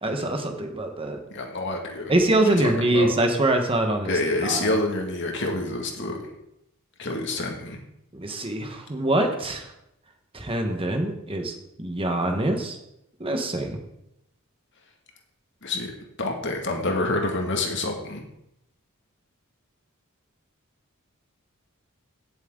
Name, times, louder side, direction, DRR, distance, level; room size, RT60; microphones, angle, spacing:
voice 1, 0.0-1.2 2.1-4.1 4.4-4.7 8.1-9.7 10.3-11.5 11.8-12.8 13.2-13.8, right 1 dB, 25° right, 4 dB, 1.3 m, -24 dB
voice 2, 1.3-2.1 2.5-3.1 4.0-6.2 7.0-7.8 15.6-15.9 16.2-18.2, left 2 dB, 55° left, 2 dB, 2.1 m, -27 dB
17.0 x 7.4 x 3.9 m, 0.81 s
head